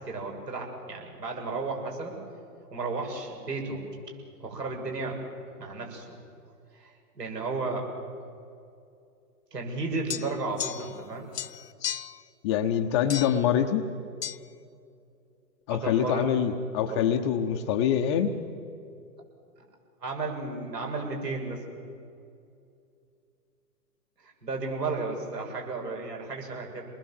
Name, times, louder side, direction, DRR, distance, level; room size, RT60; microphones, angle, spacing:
voice 1, 0.0-2.2 2.7-3.8 4.4-5.2 5.6-6.2 6.7-7.9 9.5-11.3 15.7-16.3 16.9-17.1 20.0-21.6 24.2-26.9, right 3 dB, 75° right, 2 dB, 7.0 m, -33 dB
sound 1, 10.1-11.1 11.3-12.2 13.1-13.5 14.2-14.4, left 10 dB, 70° left, 1.0 m, -35 dB
voice 2, 12.4-13.8 15.7-18.4, left 9 dB, 20° left, 6 dB, 0.6 m, -25 dB
27.5 x 20.5 x 7.4 m, 2.5 s
hypercardioid pair, 130°, 48 cm